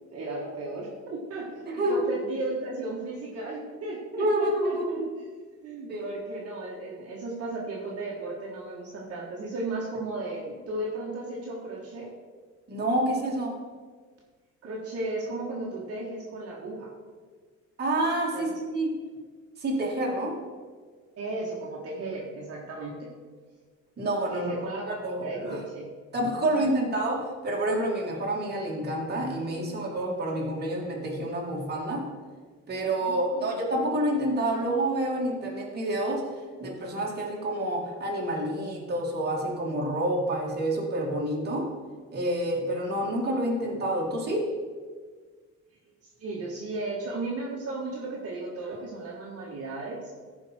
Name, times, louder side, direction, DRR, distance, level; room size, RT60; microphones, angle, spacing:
voice 1, 0.1-5.0 5.6-12.1 14.6-16.9 18.3-18.4 21.2-23.1 24.3-24.9 25.2-25.9 26.5-26.7 33.1-33.5 46.2-50.1, right 2 dB, 50° right, -4 dB, 1.9 m, -35 dB
voice 2, 1.7-2.1 4.1-5.1 5.9-6.1 12.7-13.6 17.8-19.1 19.6-20.4 24.0-24.5 24.9-25.6 26.1-32.1 32.7-36.3 36.6-41.8 42.1-44.5, right 1 dB, 35° right, -2 dB, 2.3 m, -28 dB
15.0 x 5.2 x 4.5 m, 1.5 s
cardioid pair, 130°, 30 cm